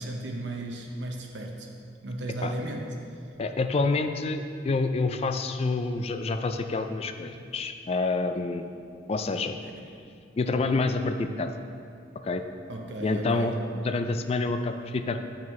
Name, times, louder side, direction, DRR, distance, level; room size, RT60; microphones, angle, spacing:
voice 1, 0.0-1.7 2.0-2.9 9.6-9.9 12.7-13.6, right 1 dB, 70° right, 2 dB, 0.8 m, -35 dB
voice 2, 3.4-8.7 9.1-9.6 10.4-11.5 12.2-12.4 13.0-13.5 13.8-15.2, left 3 dB, 35° left, 7 dB, 0.3 m, -27 dB
8.7 x 6.0 x 3.2 m, 2.4 s
head